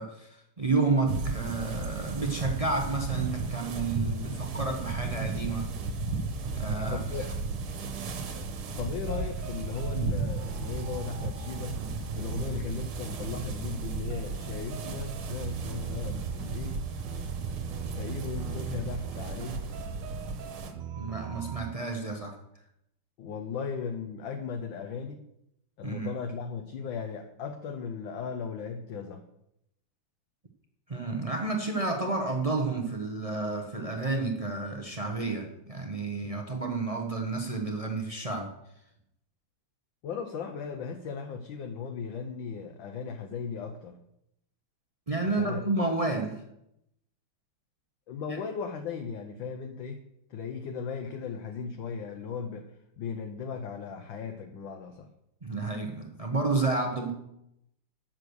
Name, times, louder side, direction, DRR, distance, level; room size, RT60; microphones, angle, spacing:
voice 1, 0.0-5.7 6.5-7.0 21.0-22.4 25.8-26.1 30.9-38.5 45.1-46.4 48.3-48.4 55.4-57.1, right 3 dB, 35° right, 0.5 m, -30 dB
sound 1, 1.1-20.7, right 3 dB, 85° right, 2.0 m, -35 dB
sound 2, 5.4-21.7, right 9 dB, 65° right, 1.3 m, -41 dB
voice 2, 6.9-7.3 8.3-11.8 12.2-16.8 17.9-19.7 23.2-25.3 25.8-29.2 40.0-44.0 45.2-45.7 48.1-52.7 53.0-55.1, left 6 dB, 70° left, 1.5 m, -37 dB
9.5 x 6.8 x 6.3 m
omnidirectional pair, 2.3 m